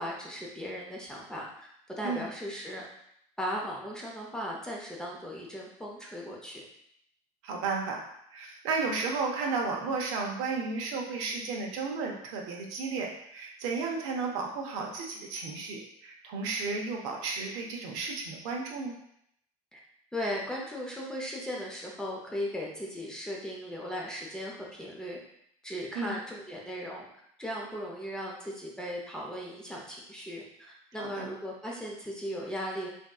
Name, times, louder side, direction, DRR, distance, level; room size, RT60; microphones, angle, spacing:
voice 1, 0.0-1.5 1.9-2.8 3.4-6.6 19.7-19.8 20.1-25.2 25.6-27.0 27.4-30.4 30.9-32.9, equal, 5° left, -3 dB, 0.5 m, -37 dB
voice 2, 7.4-8.0 8.3-19.0 25.9-26.1 31.0-31.2, right 4 dB, 85° right, 1 dB, 0.7 m, -33 dB
3.4 x 2.6 x 2.3 m, 0.73 s
cardioid pair, 140°, 16 cm